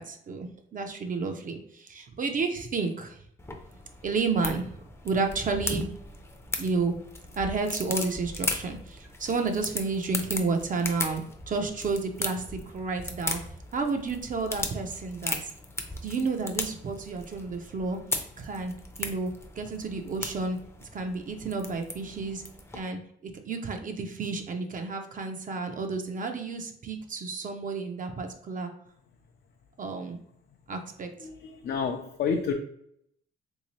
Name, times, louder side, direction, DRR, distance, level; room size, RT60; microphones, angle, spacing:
voice 1, 0.0-3.2 4.0-4.7 5.0-5.9 6.6-6.9 7.4-12.4 12.7-13.4 13.7-15.5 16.0-18.0 18.4-18.7 19.0-20.6 20.9-22.4 22.7-23.0 23.4-28.7 29.8-30.2 30.7-31.1, right 4 dB, 40° right, 5 dB, 0.5 m, -31 dB
sound 1, 3.4-22.8, left 2 dB, 15° left, 0.5 m, -37 dB
voice 2, 31.2-32.5, left 6 dB, 55° left, 3 dB, 0.5 m, -29 dB
3.3 x 2.7 x 3.1 m, 0.69 s
cardioid pair, 90°, 20 cm